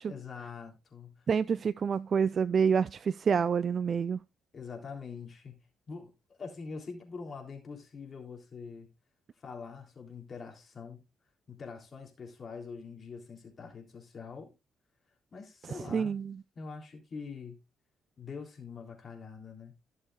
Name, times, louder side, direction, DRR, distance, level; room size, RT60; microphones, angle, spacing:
voice 1, 0.0-1.3 4.5-5.6 5.9-8.9 9.4-11.0 11.5-14.5 15.3-16.2 16.5-17.5 18.2-19.7, left 5 dB, 45° left, 3.5 m, -44 dB
voice 2, 1.3-4.2 15.9-16.4, right 6 dB, 45° right, 0.4 m, -28 dB
16.0 x 6.7 x 2.5 m
cardioid pair, 90°, 0 cm